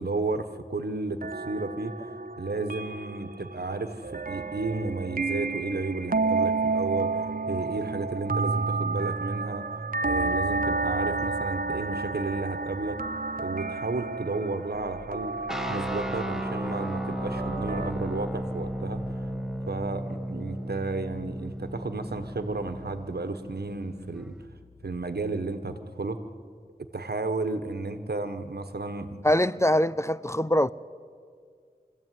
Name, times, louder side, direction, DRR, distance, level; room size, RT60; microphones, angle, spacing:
voice 1, 0.0-2.1 2.4-9.7 10.0-13.0 13.4-15.4 15.7-19.3 19.7-24.3 24.8-26.2 26.8-29.2, right 3 dB, 80° right, 9 dB, 1.4 m, -33 dB
sound 1, 1.2-17.9, right 3 dB, 60° right, 0.9 m, -31 dB
sound 2, 14.7-26.1, left 2 dB, 75° left, 1.8 m, -48 dB
sound 3, 15.5-24.4, right 1 dB, 5° right, 1.4 m, -34 dB
voice 2, 29.2-30.7, left 1 dB, 15° left, 17 dB, 0.5 m, -23 dB
25.0 x 15.0 x 9.4 m, 2.1 s
wide cardioid pair, 40°, 16 cm